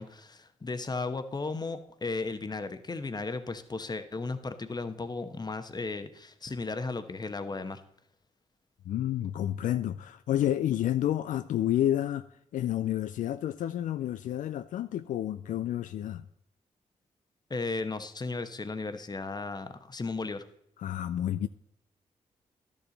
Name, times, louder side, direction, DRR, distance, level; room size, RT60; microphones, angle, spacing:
voice 1, 0.0-7.8 17.5-20.4, left 3 dB, 30° left, 1.0 m, -35 dB
voice 2, 8.9-12.2 12.5-16.2 20.8-21.5, left 12 dB, 75° left, 0.4 m, -30 dB
11.5 x 7.1 x 3.9 m
cardioid pair, 55°, 13 cm